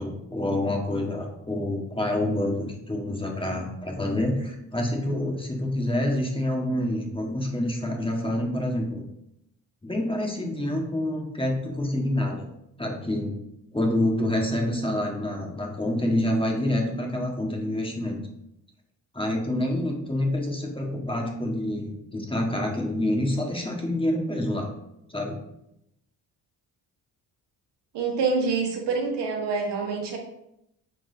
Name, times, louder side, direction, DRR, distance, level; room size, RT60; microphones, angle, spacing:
voice 1, 0.0-9.0 9.8-12.5 12.8-13.3 13.7-18.2 19.1-24.7 25.1-25.4, left 1 dB, 10° left, 1 dB, 1.6 m, -27 dB
voice 2, 27.9-30.2, right 4 dB, 70° right, 1 dB, 1.6 m, -26 dB
8.0 x 4.6 x 2.8 m, 0.81 s
supercardioid pair, 60°, 43 cm